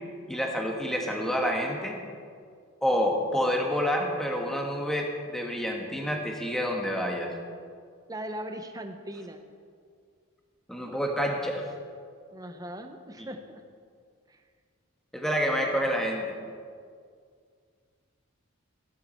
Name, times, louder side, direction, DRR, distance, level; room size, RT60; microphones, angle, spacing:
voice 1, 0.3-2.0 2.8-7.3 10.7-11.7 13.2-13.3 15.1-16.3, equal, ahead, 1 dB, 1.3 m, -28 dB
voice 2, 8.1-9.4 12.3-13.6 14.3-14.4, right 1 dB, 15° right, 7 dB, 0.8 m, -39 dB
15.0 x 12.0 x 4.4 m, 2.2 s
head